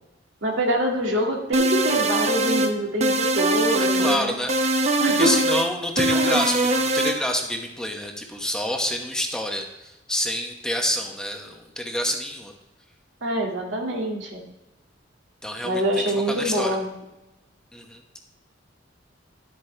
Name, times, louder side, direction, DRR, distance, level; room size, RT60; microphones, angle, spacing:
voice 1, 0.4-4.4 5.0-5.4 6.1-6.5 13.2-14.4 15.6-16.9, right 1 dB, 75° right, -1 dB, 2.2 m, -25 dB
sound 1, 1.5-2.7 3.0-4.2 4.5-5.7 6.0-7.2, right 1 dB, 35° right, 0.8 m, -22 dB
voice 2, 3.8-12.5 15.4-16.8 17.7-18.0, left 1 dB, 5° left, 2 dB, 1.0 m, -28 dB
11.5 x 8.3 x 3.3 m, 0.94 s
head